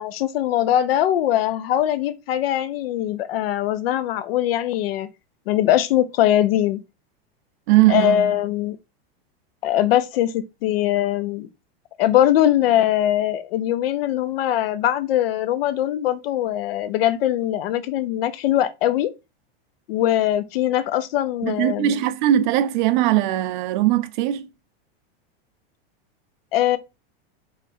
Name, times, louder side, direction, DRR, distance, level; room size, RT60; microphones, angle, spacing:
voice 1, 0.0-5.1 5.5-6.8 7.9-8.8 9.6-11.5 12.0-19.1 19.9-22.0 26.5-26.8, left 12 dB, 70° left, 0.6 m, -21 dB
voice 2, 7.7-8.3 21.4-24.5, right 13 dB, 50° right, 0.5 m, -20 dB
4.9 x 3.2 x 2.6 m
supercardioid pair, 155°, 31 cm